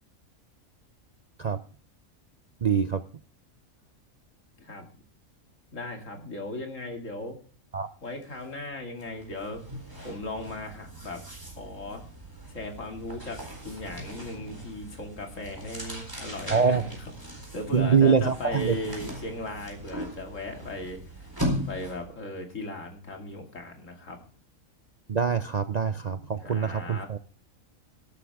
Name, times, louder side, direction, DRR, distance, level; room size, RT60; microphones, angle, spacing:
voice 1, 2.6-3.0 7.7-7.9 16.5-16.8 17.7-18.8 25.1-27.2, right 6 dB, 45° right, 10 dB, 0.5 m, -24 dB
voice 2, 5.7-7.4 8.0-9.6 10.0-11.3 11.5-12.0 12.5-21.0 21.6-24.2 26.4-27.1, left 2 dB, 70° left, 3 dB, 3.0 m, -37 dB
sound 1, 8.2-8.4 8.7-22.2, equal, 15° right, 4.2 m, -39 dB
13.5 x 12.5 x 3.6 m, 0.42 s
omnidirectional pair, 1.4 m